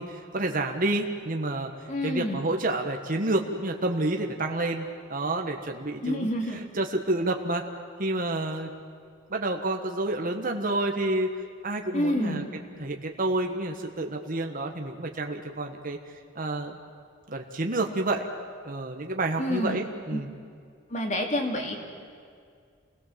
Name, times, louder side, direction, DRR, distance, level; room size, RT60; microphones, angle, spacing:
voice 1, 0.0-1.7 2.0-7.6 8.0-8.7 9.3-11.3 11.6-12.4 12.8-16.0 16.3-16.7 17.3-18.3 18.6-20.3, right 2 dB, 45° right, 3 dB, 1.5 m, -29 dB
voice 2, 1.9-2.4 6.0-6.6 11.9-12.4 19.4-19.8 20.1-20.2 20.9-21.8, left 1 dB, 40° left, 2 dB, 3.1 m, -28 dB
28.0 x 19.5 x 7.6 m, 2.2 s
head